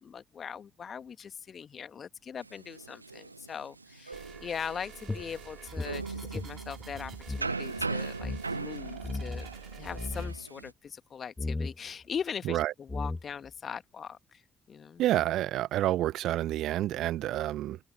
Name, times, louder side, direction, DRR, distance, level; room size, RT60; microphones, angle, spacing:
voice 1, 0.0-7.1 7.4-9.5 9.8-14.2 14.7-15.0, left 7 dB, 45° left, 1.7 m, -40 dB
sound 1, 2.4-10.7, right 3 dB, 90° right, 0.6 m, -39 dB
sound 2, 4.1-10.3, right 6 dB, 45° right, 3.8 m, -48 dB
sound 3, 5.1-7.5 7.8-7.9 8.2-8.4 9.0-9.5 9.9-10.4 11.4-11.8 12.5-12.6 12.9-13.5, left 3 dB, 20° left, 1.3 m, -36 dB
voice 2, 15.0-17.8, right 14 dB, 60° right, 0.9 m, -28 dB
figure-of-eight pair, 45°, 0 cm